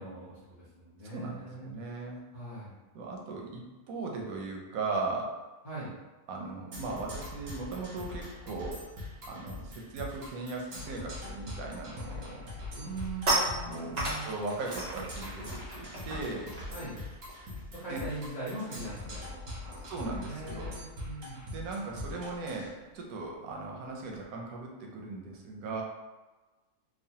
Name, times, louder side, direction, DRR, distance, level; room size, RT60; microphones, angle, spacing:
voice 1, 0.0-1.7 2.3-2.7 5.6-5.9 12.8-14.3 16.7-17.0 17.7-19.8 20.2-21.4, right 2 dB, 35° left, -12 dB, 0.6 m, -41 dB
voice 2, 1.0-2.2 2.9-5.4 6.3-8.8 9.3-12.4 13.7-16.5 17.9-18.0 19.9-20.7 21.5-25.8, right 3 dB, 90° right, 0 dB, 1.1 m, -38 dB
Percussion, 6.7-22.7, left 1 dB, 70° right, 1.2 m, -42 dB
sound 1, 11.9-12.1 12.5-18.4 18.7-19.0 19.2-24.2, right 1 dB, 45° right, 0.6 m, -37 dB
3.1 x 2.2 x 2.7 m, 1.2 s
omnidirectional pair, 1.4 m